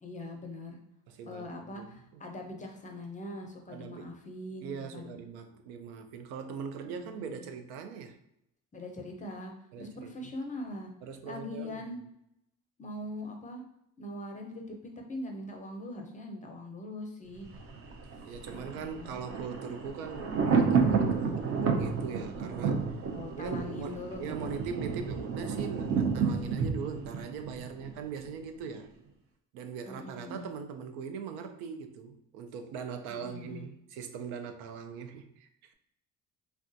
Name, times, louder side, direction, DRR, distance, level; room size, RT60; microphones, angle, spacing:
voice 1, 0.0-0.8 1.3-5.2 7.0-7.4 8.7-9.5 9.8-10.9 11.2-12.0 12.8-13.6 14.0-17.5 18.5-19.2 23.1-24.5 29.8-30.5 33.1-33.7, left 1 dB, 20° left, 0.5 m, -42 dB
voice 2, 1.1-2.2 3.7-4.1 4.6-8.2 9.7-10.3 11.0-11.8 18.2-22.8 23.4-28.9 29.5-35.7, right 6 dB, 85° right, 0.5 m, -41 dB
Thunder, 17.4-28.3 28.6-28.7, right 5 dB, 40° right, 0.6 m, -31 dB
3.3 x 2.4 x 2.6 m
cardioid pair, 100°, 36 cm